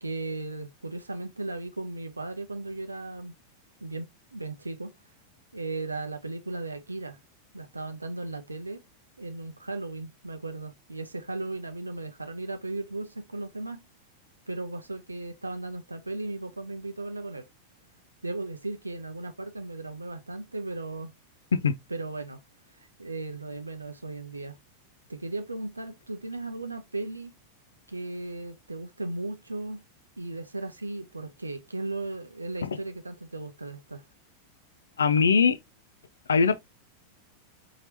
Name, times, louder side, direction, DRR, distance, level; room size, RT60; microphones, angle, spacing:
voice 1, 0.0-3.3 3.8-4.9 5.5-7.2 7.5-8.8 9.2-13.8 14.5-17.4 18.2-21.1 21.9-22.4 22.7-24.6 25.1-27.3 27.9-29.8 30.2-34.0, right 2 dB, 80° right, 0.4 m, -36 dB
voice 2, 35.0-35.6 36.3-36.6, left 5 dB, 70° left, 0.4 m, -21 dB
4.4 x 2.8 x 2.7 m
figure-of-eight pair, 90°, 0 cm